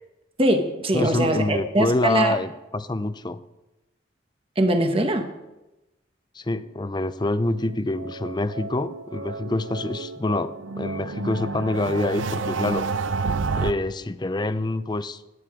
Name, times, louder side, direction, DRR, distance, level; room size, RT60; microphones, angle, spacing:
voice 1, 0.4-2.3 4.6-5.3, right 1 dB, 30° right, 5 dB, 1.3 m, -22 dB
voice 2, 0.9-3.4 6.3-12.9 13.5-15.2, left 2 dB, 20° left, 13 dB, 0.5 m, -26 dB
sound 1, 7.6-13.7, right 4 dB, 80° right, 0.6 m, -30 dB
18.0 x 9.8 x 5.0 m, 1.0 s
head